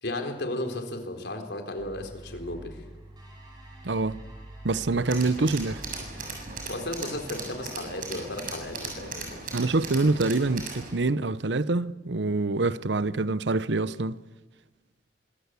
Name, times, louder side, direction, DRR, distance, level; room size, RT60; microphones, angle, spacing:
voice 1, 0.0-2.8 4.9-5.0 6.7-9.4, left 1 dB, 75° left, 4.1 m, -34 dB
sound 1, 1.8-6.8, right 1 dB, 25° right, 6.6 m, -46 dB
voice 2, 3.8-4.2 4.6-5.8 9.5-14.3, right 3 dB, 85° right, 0.8 m, -26 dB
Tools, 5.1-10.9, right 3 dB, 50° right, 7.1 m, -38 dB
25.0 x 21.0 x 8.4 m
head